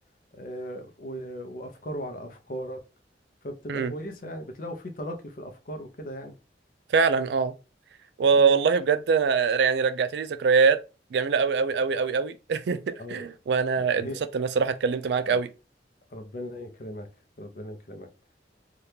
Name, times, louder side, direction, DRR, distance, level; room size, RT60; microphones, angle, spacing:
voice 1, 0.3-2.8 3.4-6.4 8.3-8.6 13.0-13.3 13.8-14.2 15.3-15.4 16.1-17.1 17.4-18.1, equal, 50° left, 0.6 m, -38 dB
voice 2, 6.9-7.5 8.2-10.8 11.1-14.1 14.3-15.5, right 5 dB, 70° right, 0.3 m, -23 dB
2.8 x 2.3 x 3.4 m
head